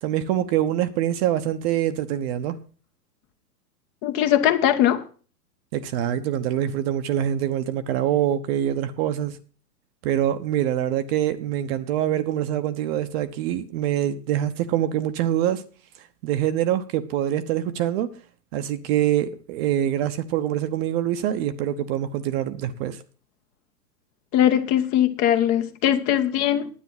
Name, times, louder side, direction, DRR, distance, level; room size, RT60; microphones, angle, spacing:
voice 1, 0.0-2.6 5.7-9.4 10.0-15.6 16.2-18.1 18.5-23.0, right 11 dB, 40° right, 0.9 m, -24 dB
voice 2, 4.0-5.0 24.3-26.7, left 11 dB, 35° left, 1.0 m, -20 dB
10.0 x 8.7 x 5.9 m
hypercardioid pair, 120°, 49 cm